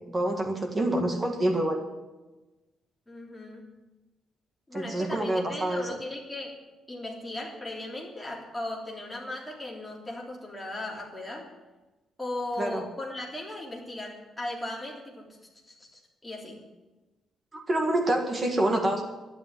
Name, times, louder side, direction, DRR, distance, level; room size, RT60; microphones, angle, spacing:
voice 1, 0.1-1.8 4.7-5.8 12.6-12.8 17.5-19.0, right 1 dB, 20° right, 3 dB, 1.8 m, -27 dB
voice 2, 3.1-3.7 4.7-6.5 6.9-11.5 12.2-15.4 15.7-16.6, left 1 dB, 5° left, -3 dB, 3.4 m, -37 dB
12.0 x 10.5 x 9.7 m, 1.1 s
cardioid pair, 160°, 0 cm